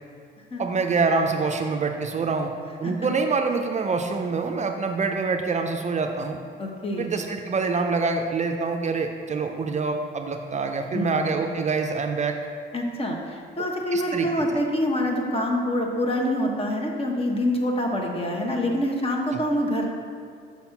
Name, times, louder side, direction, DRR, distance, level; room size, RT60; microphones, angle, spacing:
voice 1, 0.6-2.5 2.8-6.4 7.0-12.4 13.9-14.3, right 4 dB, 35° right, 4 dB, 0.4 m, -25 dB
voice 2, 6.6-7.1 10.9-11.3 12.7-19.9, left 1 dB, 30° left, 1 dB, 1.1 m, -26 dB
5.9 x 4.2 x 5.7 m, 2.2 s
cardioid pair, 90°, 20 cm